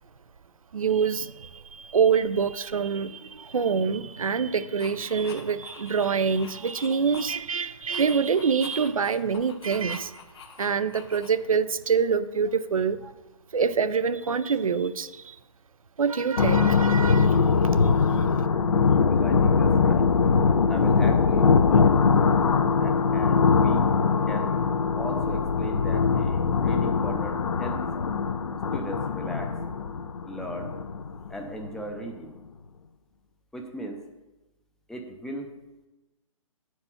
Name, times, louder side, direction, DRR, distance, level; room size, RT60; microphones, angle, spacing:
voice 1, 0.7-10.1 10.6-13.1 13.5-15.4 16.0-18.3, right 6 dB, 85° right, 13 dB, 0.5 m, -26 dB
sound 1, 4.8-7.5 7.8-11.6, left 5 dB, 50° left, 1.1 m, -46 dB
sound 2, 16.4-31.7, left 5 dB, 75° left, 0.7 m, -22 dB
voice 2, 18.9-20.1 20.7-21.9 22.8-23.9 24.3-24.6 24.9-27.8 28.7-29.6 30.3-30.7 31.3-32.3 33.5-34.0 34.9-35.5, right 1 dB, 5° left, 2 dB, 0.5 m, -37 dB
8.5 x 4.6 x 5.6 m, 1.1 s
hypercardioid pair, 140°, 18 cm